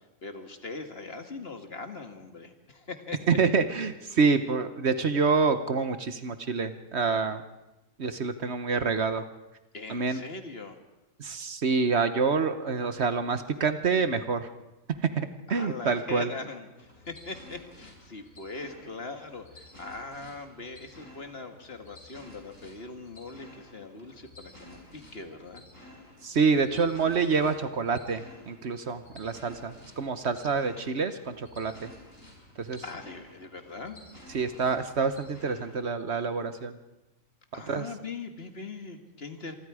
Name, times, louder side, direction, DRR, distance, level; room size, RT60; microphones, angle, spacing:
voice 1, 0.0-3.2 9.7-10.8 15.5-25.7 32.8-34.0 34.5-34.7 37.5-39.5, left 3 dB, 50° left, 6 dB, 2.0 m, -41 dB
voice 2, 3.3-7.4 8.0-9.2 9.9-10.2 11.2-14.5 15.2-16.3 26.2-31.9 32.6-32.8 34.3-36.8 37.7-37.9, right 5 dB, 55° right, 10 dB, 1.3 m, -27 dB
sound 1, 16.8-35.9, left 1 dB, 75° left, 6.2 m, -52 dB
26.5 x 24.0 x 4.9 m, 0.99 s
omnidirectional pair, 1.4 m